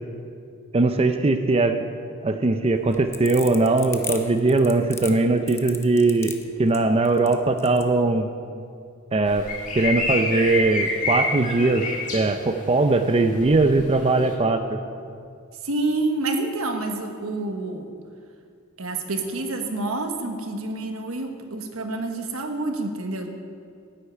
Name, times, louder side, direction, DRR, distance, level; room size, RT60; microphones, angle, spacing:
voice 1, 0.7-1.8 2.2-6.3 6.6-8.3 9.1-9.4 9.7-11.9 12.1-14.8, right 3 dB, 30° right, 7 dB, 0.5 m, -20 dB
sound 1, 2.8-7.9, left 4 dB, 15° left, 0.8 m, -36 dB
sound 2, 9.3-12.2 13.4-13.9, left 2 dB, 35° left, 2.2 m, -27 dB
voice 2, 15.6-17.9 18.8-23.3, right 2 dB, 80° right, 5 dB, 1.3 m, -28 dB
10.0 x 8.3 x 9.6 m, 2.3 s
head